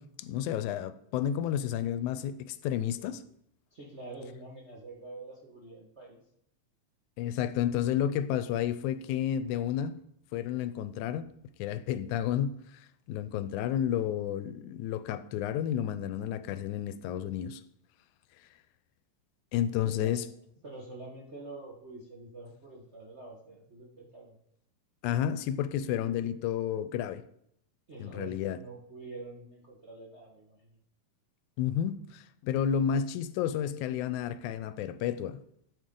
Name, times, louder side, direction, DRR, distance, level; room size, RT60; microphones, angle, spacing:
voice 1, 0.0-3.2 7.2-10.0 10.3-11.2 11.6-12.6 13.1-17.6 19.5-20.2 25.0-27.2 28.0-28.6 31.6-35.4, left 10 dB, 85° left, 2.0 m, -31 dB
voice 2, 3.7-6.2 19.8-20.2 20.6-24.4 27.9-30.8, right 2 dB, 55° right, 0.7 m, -46 dB
12.5 x 7.0 x 3.8 m
omnidirectional pair, 3.4 m